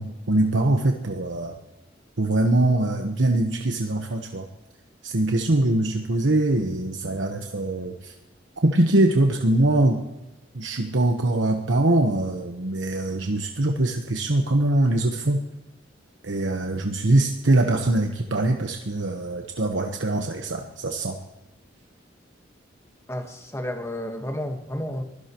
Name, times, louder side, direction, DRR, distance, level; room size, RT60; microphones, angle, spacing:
voice 1, 0.0-1.5 2.2-4.5 5.0-8.1 8.6-10.0 10.5-15.4 16.2-21.2, right 1 dB, 85° right, 1.1 m, -23 dB
voice 2, 23.1-25.0, left 1 dB, 15° left, 1.4 m, -31 dB
23.5 x 16.5 x 3.1 m
head